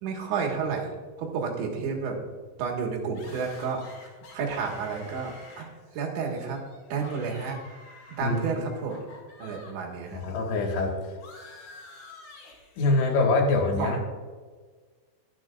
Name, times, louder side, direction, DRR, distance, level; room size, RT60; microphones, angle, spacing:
voice 1, 0.0-0.9 1.2-2.2 2.6-3.8 4.3-5.7 5.9-6.6 6.9-7.6 8.2-9.0 9.4-10.3 13.8-14.0, right 5 dB, 75° right, 0 dB, 3.8 m, -31 dB
sound 1, 3.1-9.7 10.0-13.2, left 3 dB, 50° left, 3.4 m, -49 dB
voice 2, 8.2-8.7 10.1-11.1 12.8-14.0, left 3 dB, 70° left, 0 dB, 3.7 m, -25 dB
23.0 x 7.6 x 2.5 m, 1.4 s
omnidirectional pair, 5.5 m